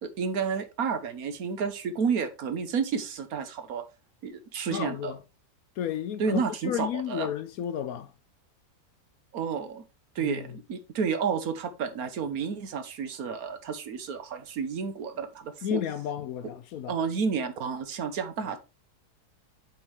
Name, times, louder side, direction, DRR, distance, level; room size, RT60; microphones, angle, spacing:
voice 1, 0.0-3.8 4.2-5.2 6.2-7.3 9.3-9.8 10.1-15.8 16.9-18.6, right 6 dB, 65° right, 1.3 m, -31 dB
voice 2, 4.7-5.2 5.8-8.1 10.2-10.5 15.6-16.9, left 10 dB, 70° left, 1.0 m, -32 dB
8.6 x 4.5 x 3.2 m
omnidirectional pair, 1.7 m